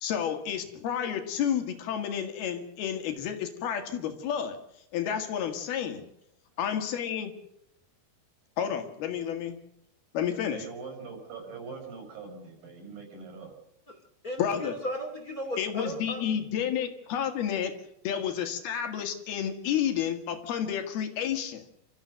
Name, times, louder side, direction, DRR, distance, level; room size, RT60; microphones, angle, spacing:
voice 1, 0.0-4.6 4.9-6.1 6.6-7.3 8.6-9.6 10.1-10.6 14.4-14.8 15.6-17.7 18.0-21.6, left 9 dB, 80° left, 6 dB, 3.9 m, -30 dB
voice 2, 10.2-13.5, right 5 dB, 65° right, 4 dB, 7.4 m, -43 dB
voice 3, 14.2-16.2, equal, 25° left, 4 dB, 2.7 m, -36 dB
28.5 x 14.5 x 6.5 m, 0.78 s
omnidirectional pair, 4.4 m